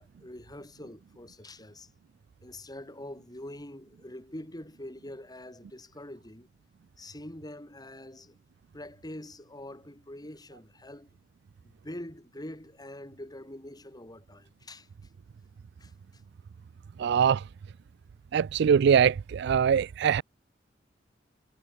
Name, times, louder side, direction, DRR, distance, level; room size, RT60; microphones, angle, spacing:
voice 1, 0.0-1.9 2.4-6.5 7.0-8.4 8.7-11.1 11.8-14.9 15.8-15.9, left 1 dB, 20° left, 3.8 m, -44 dB
voice 2, 17.0-17.4 18.3-20.2, right 7 dB, 60° right, 0.3 m, -22 dB
head